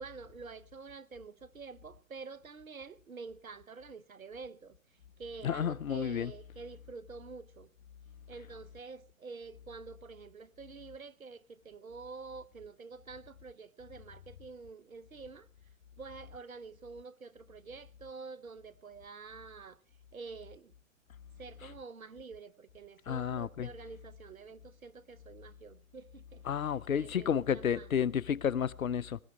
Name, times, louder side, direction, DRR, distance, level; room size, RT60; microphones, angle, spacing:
voice 1, 0.0-4.8 5.2-7.7 8.3-15.5 16.0-19.8 20.1-20.7 21.4-27.9, right 4 dB, 85° right, 1.0 m, -48 dB
voice 2, 5.4-6.3 23.1-23.7 26.5-29.2, left 8 dB, 80° left, 0.7 m, -31 dB
19.5 x 17.0 x 3.4 m
figure-of-eight pair, 120°, 40 cm